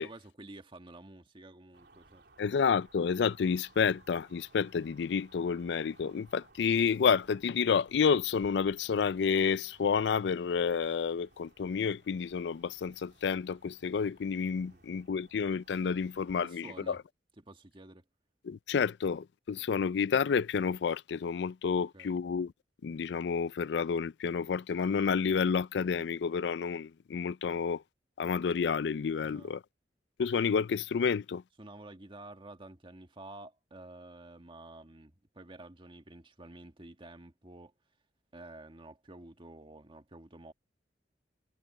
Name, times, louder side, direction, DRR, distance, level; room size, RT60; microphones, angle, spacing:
voice 1, 0.0-2.5 14.7-14.8 16.4-17.0 17.4-18.1 21.8-22.1 29.2-29.5 31.6-37.7 38.3-40.5, right 2 dB, 30° right, 1.8 m, -50 dB
sound 1, 1.7-16.5, right 2 dB, 65° right, 3.2 m, -62 dB
voice 2, 2.4-17.0 18.4-22.5 22.8-27.8 28.2-29.6 30.2-31.4, left 6 dB, 70° left, 0.4 m, -30 dB
head